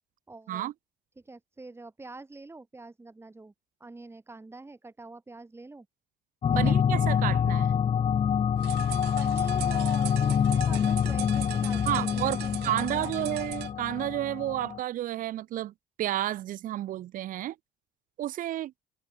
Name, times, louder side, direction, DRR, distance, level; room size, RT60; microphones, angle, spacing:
voice 1, 0.3-0.7 1.2-3.5 3.8-5.9 6.6-6.8 9.2-13.4, right 3 dB, 15° right, 3.7 m, -46 dB
sound 1, 6.4-14.8, left 8 dB, 35° left, 0.7 m, -26 dB
voice 2, 6.5-7.7 11.9-12.4 12.6-17.6 18.2-18.7, right 13 dB, 55° right, 0.5 m, -31 dB
sound 2, 8.6-13.7, right 18 dB, 85° right, 1.8 m, -41 dB
cardioid pair, 110°, 17 cm